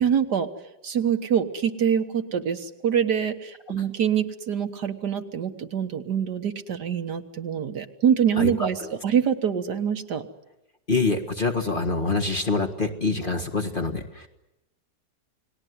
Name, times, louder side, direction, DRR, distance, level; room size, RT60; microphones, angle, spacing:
voice 1, 0.0-0.5 0.8-10.3, right 8 dB, 65° right, 7 dB, 1.8 m, -25 dB
voice 2, 8.4-8.9 10.9-14.3, left 3 dB, 30° left, 3 dB, 1.7 m, -26 dB
29.0 x 19.5 x 9.5 m, 0.94 s
omnidirectional pair, 2.0 m